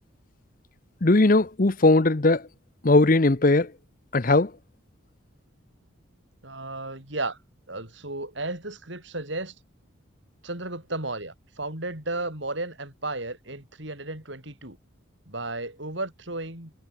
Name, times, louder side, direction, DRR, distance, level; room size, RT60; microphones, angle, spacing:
voice 1, 1.0-2.5 2.8-3.7 4.1-4.5, left 2 dB, 40° left, 0.8 m, -19 dB
voice 2, 6.4-7.4 7.7-9.5 10.4-14.8 15.3-16.7, right 2 dB, 65° right, 6.7 m, -34 dB
head